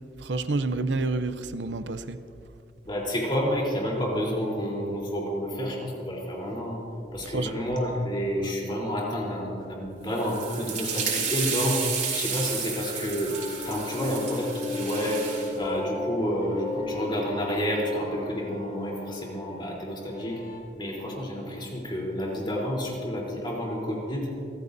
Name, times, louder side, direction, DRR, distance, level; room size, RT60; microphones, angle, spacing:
voice 1, 0.2-2.2 7.2-7.6, right 3 dB, 85° right, 0.6 m, -29 dB
voice 2, 2.8-6.8 7.1-15.2 15.5-20.4 20.8-24.3, equal, 30° left, 3.7 m, -29 dB
sound 1, 10.1-15.5, right 6 dB, 45° right, 4.4 m, -32 dB
sound 2, 13.3-20.6, left 3 dB, 45° left, 2.2 m, -36 dB
28.5 x 15.0 x 2.7 m
head